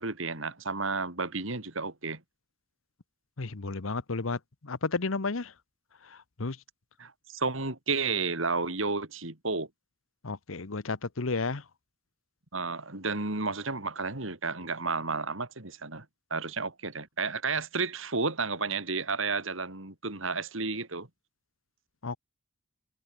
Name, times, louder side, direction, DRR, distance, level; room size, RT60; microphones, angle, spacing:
voice 1, 0.0-2.2 7.0-9.7 12.5-16.0 16.3-21.1, right 4 dB, 80° right, 3.2 m, -32 dB
voice 2, 3.4-5.5 6.0-6.6 10.2-11.6 22.0-22.2, left 3 dB, 85° left, 1.1 m, -32 dB
head